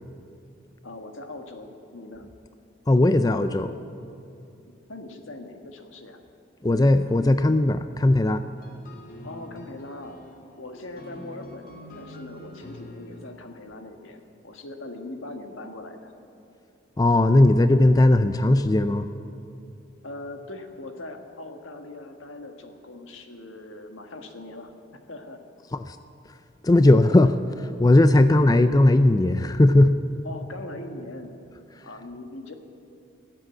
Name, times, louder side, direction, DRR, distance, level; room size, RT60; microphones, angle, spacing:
voice 1, 0.8-2.3 4.9-6.2 9.2-10.2 10.6-11.7 11.9-16.1 20.0-24.7 25.1-25.4 28.2-28.7 30.2-31.3 31.8-32.5, left 2 dB, 90° left, 5 dB, 1.6 m, -40 dB
voice 2, 2.9-3.7 6.6-8.4 17.0-19.1 25.7-26.0 26.6-29.9, left 1 dB, 20° left, 10 dB, 0.4 m, -18 dB
sound 1, 8.6-14.0, left 1 dB, 45° left, 1.9 m, -45 dB
18.5 x 7.7 x 9.4 m, 2.7 s
head